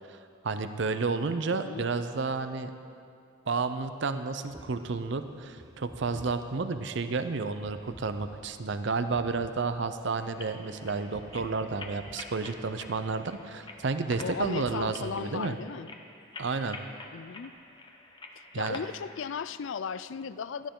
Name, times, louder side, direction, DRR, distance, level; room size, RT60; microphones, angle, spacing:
voice 1, 0.4-2.7 3.5-15.5 16.4-16.8 18.5-18.8, right 4 dB, 60° right, 9 dB, 0.6 m, -31 dB
voice 2, 1.5-1.9 14.2-15.9 17.1-17.5 18.4-20.7, left 6 dB, 65° left, 14 dB, 0.4 m, -36 dB
sound 1, 4.5-14.8, right 1 dB, 15° right, 0.7 m, -53 dB
sound 2, 10.2-19.3, left 2 dB, 20° left, 0.9 m, -47 dB
17.0 x 13.5 x 3.8 m, 2.3 s
head